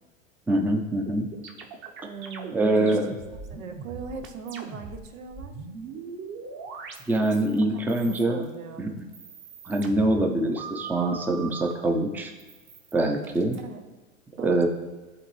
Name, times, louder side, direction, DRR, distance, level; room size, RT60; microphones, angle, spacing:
voice 1, 0.5-1.3 2.5-3.1 7.1-8.4 8.8-8.9 9.6-12.3 12.9-13.6 14.4-14.7, right 1 dB, 5° right, 3 dB, 0.5 m, -24 dB
sound 1, 1.1-5.0 5.3-7.6 7.9-8.5 9.0-11.7 12.4-13.6, right 5 dB, 30° right, 0.9 m, -41 dB
voice 2, 2.0-3.2 3.5-5.6 7.2-8.9 13.6-13.9 14.4-14.7, right 5 dB, 90° right, 7 dB, 0.9 m, -39 dB
10.5 x 3.8 x 3.2 m, 1.2 s
hypercardioid pair, 105°, 39 cm